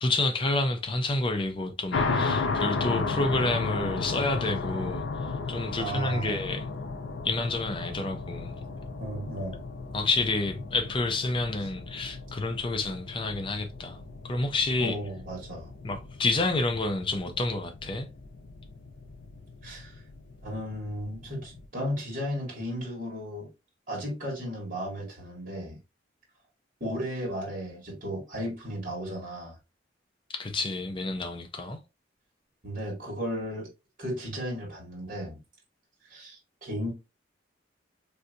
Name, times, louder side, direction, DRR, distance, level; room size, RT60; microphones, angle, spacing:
voice 1, 0.0-6.7 7.2-8.6 9.9-15.0 15.8-18.1 30.3-31.8, left 2 dB, 30° left, 0.4 m, -29 dB
sound 1, 1.9-21.6, left 4 dB, 75° left, 0.6 m, -35 dB
voice 2, 5.8-6.4 9.0-9.6 14.8-15.7 19.6-20.0 20.4-23.5 23.9-25.8 26.8-29.6 32.6-33.7 34.0-35.4 36.1-36.9, equal, 45° right, 1.4 m, -34 dB
3.3 x 2.6 x 2.5 m
head